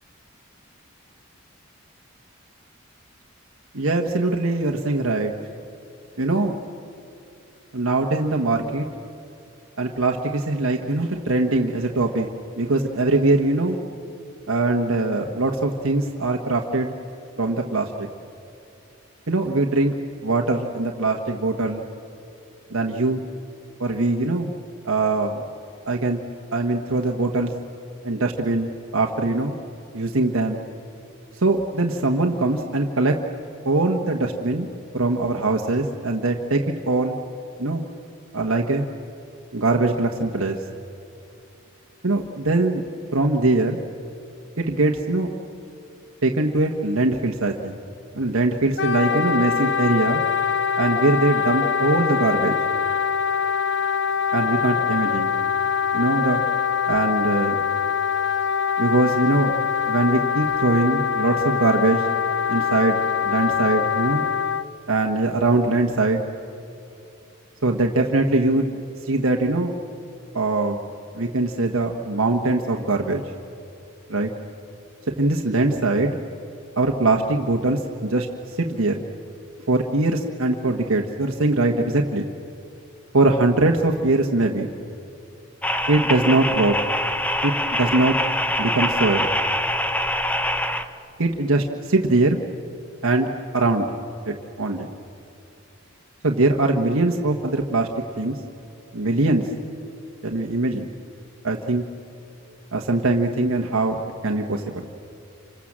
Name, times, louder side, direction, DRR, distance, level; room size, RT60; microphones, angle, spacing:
voice 1, 3.7-5.3 6.2-6.6 7.7-8.9 9.8-12.3 12.6-13.8 14.5-16.9 17.4-18.1 19.3-19.9 20.2-21.9 22.7-23.2 23.8-24.5 24.8-25.3 25.9-26.2 26.5-27.5 28.0-29.5 29.9-30.6 31.4-33.2 33.6-34.7 34.9-37.2 37.6-37.8 38.3-38.9 39.5-40.6 42.0-42.8 43.1-43.8 44.6-45.3 46.2-47.8 48.1-50.2 50.8-52.5 54.3-55.3 55.9-56.4 56.9-57.6 58.8-59.6 59.9-62.1 62.5-64.2 64.9-66.2 67.6-68.8 69.1-69.8 70.3-70.8 71.1-73.2 74.1-74.3 75.2-76.2 76.8-78.3 78.6-79.0 79.7-82.3 83.1-84.7 85.9-86.8 87.4-88.2 88.6-89.3 91.2-92.4 93.0-93.9 94.2-94.9 96.2-97.9 98.2-98.4 98.9-99.5 100.2-100.9 101.4-101.8 102.7-104.8, right 2 dB, 80° right, 2 dB, 1.4 m, -22 dB
Wind instrument woodwind instrument, 48.8-64.6, left 7 dB, 55° left, 0.7 m, -23 dB
sound 1, 85.6-90.8, left 1 dB, 5° left, 0.9 m, -24 dB
29.5 x 26.5 x 7.5 m, 2.6 s
head